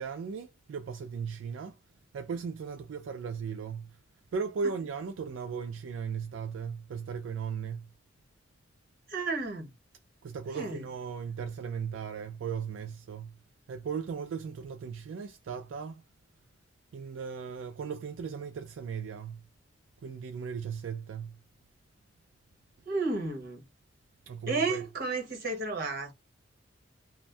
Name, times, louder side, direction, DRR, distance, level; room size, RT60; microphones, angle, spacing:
voice 1, 0.0-1.7 2.1-3.9 4.3-7.9 10.2-13.3 13.7-16.0 16.9-19.4 20.0-21.4 24.3-24.8, right 6 dB, 80° right, 0.3 m, -37 dB
voice 2, 9.1-9.7 10.5-10.8 22.9-23.6 24.5-26.1, right 3 dB, 50° right, 1.1 m, -32 dB
2.5 x 2.1 x 3.3 m
head